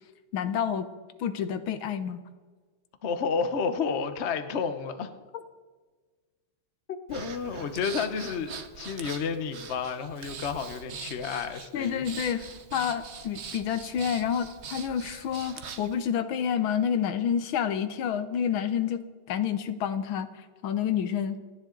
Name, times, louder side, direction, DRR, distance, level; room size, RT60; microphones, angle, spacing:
voice 1, 0.3-0.9 1.2-2.2 11.7-12.4 12.7-19.0 19.3-20.3 20.6-21.4, left 8 dB, 75° left, 11 dB, 1.6 m, -28 dB
voice 2, 3.0-5.1 6.9-12.4, left 5 dB, 50° left, 8 dB, 0.8 m, -31 dB
Breathing, 7.1-15.9, right 6 dB, 50° right, 0.8 m, -42 dB
28.0 x 10.0 x 3.9 m, 1.4 s
omnidirectional pair, 2.3 m